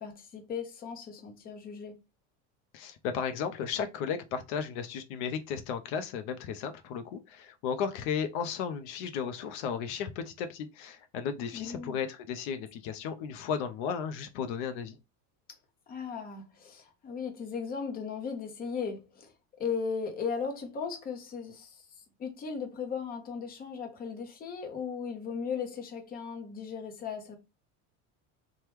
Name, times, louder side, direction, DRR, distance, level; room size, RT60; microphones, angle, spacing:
voice 1, 0.0-2.0 11.5-12.0 15.9-21.8 22.2-27.4, left 6 dB, 25° left, 0.7 m, -37 dB
voice 2, 2.7-15.0, left 7 dB, 75° left, 0.5 m, -34 dB
3.0 x 2.2 x 3.3 m
cardioid pair, 140°, 35 cm